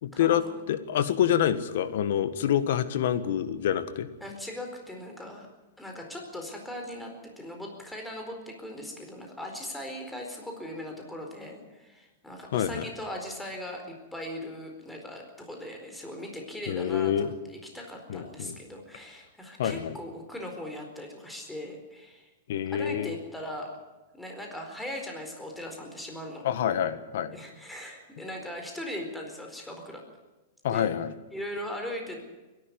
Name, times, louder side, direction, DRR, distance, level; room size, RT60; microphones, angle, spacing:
voice 1, 0.0-4.1 12.5-12.8 16.7-17.3 18.1-18.5 19.6-19.9 22.5-23.2 26.4-27.4 30.6-31.1, left 10 dB, 70° left, 12 dB, 1.7 m, -27 dB
voice 2, 4.2-5.5 5.8-22.3 22.7-23.7 24.1-26.4 27.3-30.0 30.7-30.9 31.3-32.2, left 1 dB, 5° left, 2 dB, 4.4 m, -39 dB
22.5 x 12.0 x 9.5 m, 1.1 s
hypercardioid pair, 140°, 0 cm